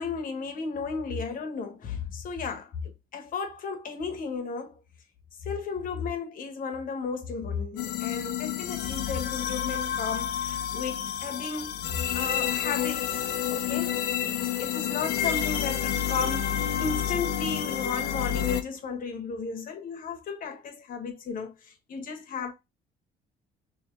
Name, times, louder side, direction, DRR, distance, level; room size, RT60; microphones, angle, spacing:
voice 1, 0.0-4.8 5.4-14.0 14.2-22.5, left 5 dB, 55° left, 1.2 m, -34 dB
sound 1, 7.8-18.6, left 10 dB, 80° left, 0.7 m, -29 dB
3.3 x 3.1 x 3.6 m
cardioid pair, 110°, 17 cm